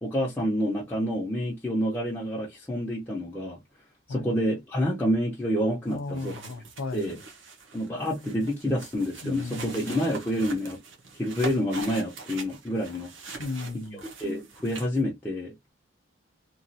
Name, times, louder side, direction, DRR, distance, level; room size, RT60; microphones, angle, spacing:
voice 1, 0.0-3.6 4.1-6.3 6.9-7.2 7.7-10.8 11.1-13.1 13.9-15.5, equal, 10° left, 0.6 m, -28 dB
voice 2, 5.8-7.2 8.2-8.5 9.2-9.9 13.4-14.0, left 3 dB, 90° left, 0.6 m, -35 dB
sound 1, 5.9-15.0, right 4 dB, 75° right, 0.8 m, -42 dB
3.0 x 2.3 x 2.7 m
head